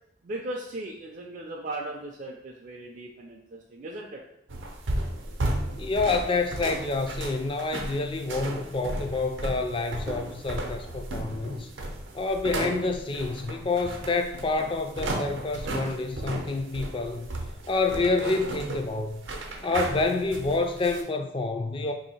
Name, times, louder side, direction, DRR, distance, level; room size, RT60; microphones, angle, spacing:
voice 1, 0.2-4.2, right 1 dB, 45° right, -1 dB, 0.4 m, -37 dB
sound 1, 4.5-21.0, right 1 dB, 85° right, 0.6 m, -34 dB
voice 2, 5.8-11.7 12.1-17.3 17.7-19.2 19.6-21.9, left 3 dB, 30° left, 5 dB, 0.3 m, -28 dB
3.3 x 2.7 x 4.2 m, 0.80 s
head